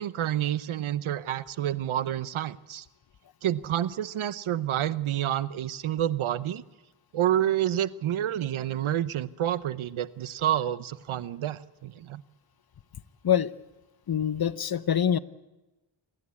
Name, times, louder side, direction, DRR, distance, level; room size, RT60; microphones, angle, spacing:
voice 1, 0.0-2.8 3.4-6.6 7.1-12.2, right 11 dB, 80° right, 16 dB, 0.8 m, -29 dB
voice 2, 14.1-15.2, left 9 dB, 50° left, 15 dB, 0.8 m, -25 dB
27.0 x 12.0 x 8.3 m, 1.1 s
cardioid pair, 60°, 48 cm